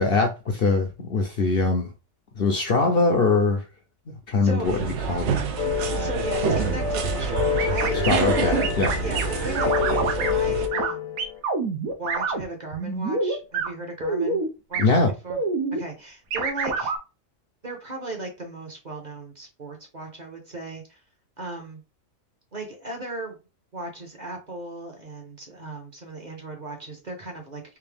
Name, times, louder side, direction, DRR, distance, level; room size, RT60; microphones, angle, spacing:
voice 1, 0.0-1.9 2.4-3.6 4.1-4.8 5.1-5.4 8.1-8.9 14.8-15.1, left 3 dB, 55° left, 2 dB, 0.7 m, -22 dB
voice 2, 4.4-4.8 5.9-8.6 8.9-11.1 11.9-15.4 15.7-16.9 17.6-21.0 21.4-21.8 22.5-23.4 23.7-27.8, right 2 dB, 35° right, 2 dB, 1.0 m, -37 dB
sound 1, 4.6-10.7, right 5 dB, 65° right, 0.9 m, -27 dB
sound 2, 5.6-11.4, left 9 dB, 75° left, 1.2 m, -28 dB
sound 3, 7.6-8.1 8.6-9.2 9.5-10.3 10.7-10.9 11.2-12.4 12.7-13.7 14.0-14.5 14.7-14.8 15.3-15.8 16.3-17.0, right 4 dB, 85° right, 1.2 m, -26 dB
3.5 x 2.8 x 3.4 m, 0.29 s
omnidirectional pair, 1.4 m